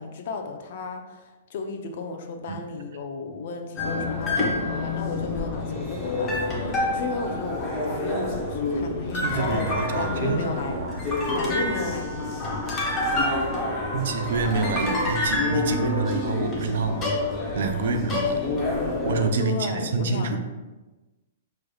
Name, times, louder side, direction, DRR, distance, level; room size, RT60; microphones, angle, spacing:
voice 1, 0.0-10.8 11.3-12.5 19.4-20.4, left 4 dB, 50° left, 4 dB, 0.5 m, -33 dB
sound 1, 3.8-19.3, left 2 dB, 15° left, 0.8 m, -27 dB
voice 2, 9.1-11.1 13.9-17.2 17.5-18.4 19.0-20.4, right 4 dB, 65° right, 7 dB, 0.5 m, -27 dB
6.1 x 3.2 x 2.3 m, 1.1 s
hypercardioid pair, 165°, 0 cm